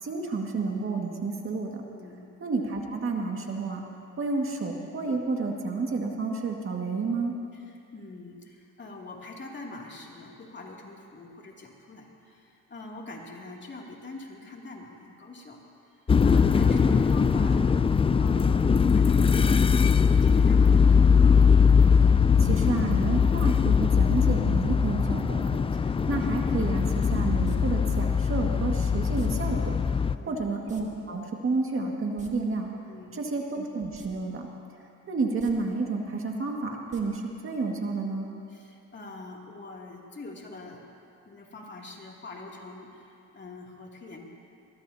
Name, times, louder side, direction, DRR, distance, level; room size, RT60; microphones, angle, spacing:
voice 1, 0.0-1.8 2.4-3.8 4.2-7.3 22.4-32.7 33.1-34.5 35.1-38.3, right 3 dB, 45° right, 1 dB, 2.0 m, -30 dB
voice 2, 1.9-2.3 7.5-21.2 30.1-30.4 32.9-33.2 38.5-40.8 41.3-44.2, left 3 dB, 35° left, -2 dB, 2.8 m, -44 dB
sound 1, 16.1-30.2, left 6 dB, 20° left, 0.4 m, -21 dB
sound 2, 27.4-27.6 29.1-29.3 30.7-30.8 31.1-31.2 32.0-32.3 33.9-34.1 34.5-34.6 35.3-35.5 36.9-37.0 37.3-37.4, right 3 dB, 25° right, 2.2 m, -49 dB
22.5 x 21.0 x 2.9 m, 2.6 s
cardioid pair, 90°, 30 cm